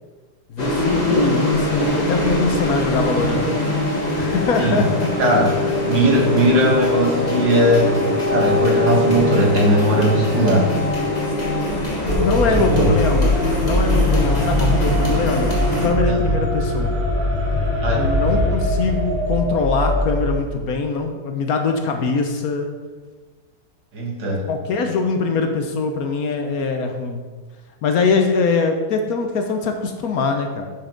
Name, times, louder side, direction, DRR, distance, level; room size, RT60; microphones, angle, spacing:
voice 1, 0.5-3.5 4.2-5.1 5.9-6.0 12.0-17.0 18.0-22.7 24.5-27.3 27.8-30.7, left 4 dB, 65° left, 5 dB, 1.1 m, -22 dB
sound 1, 0.6-15.9, left 1 dB, 25° left, 1.4 m, -22 dB
voice 2, 5.2-5.5 5.9-10.7 12.5-12.9 17.8-18.0 23.9-24.4, right 1 dB, 80° right, -2 dB, 2.5 m, -18 dB
sound 2, 12.1-20.4, left 1 dB, 25° right, 2.2 m, -21 dB
10.0 x 5.8 x 3.8 m, 1.4 s
omnidirectional pair, 1.9 m